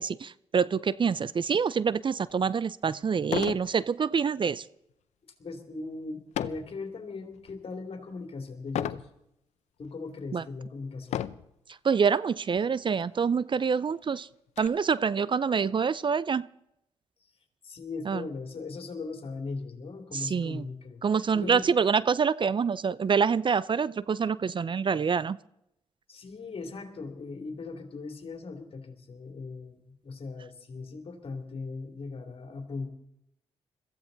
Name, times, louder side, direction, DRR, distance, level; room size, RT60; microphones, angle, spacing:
voice 1, 0.0-4.7 10.3-10.4 11.8-14.3 14.6-16.5 18.1-18.3 20.1-20.7 21.0-25.4, right 6 dB, 45° right, 19 dB, 0.5 m, -26 dB
sound 1, 2.3-2.4 3.2-3.7 4.1-4.4 6.3-6.7 7.3-7.7 8.7-9.1 9.8-9.9 11.0-11.5 12.5-12.7 13.0-13.1 13.5-14.7, left 11 dB, 85° left, 0.6 m, -33 dB
voice 2, 5.4-9.1 9.8-11.3 17.6-21.0 21.3-21.6 26.1-32.9, left 3 dB, 55° left, 5 dB, 2.8 m, -39 dB
21.5 x 15.0 x 4.0 m, 0.80 s
supercardioid pair, 55°, 11 cm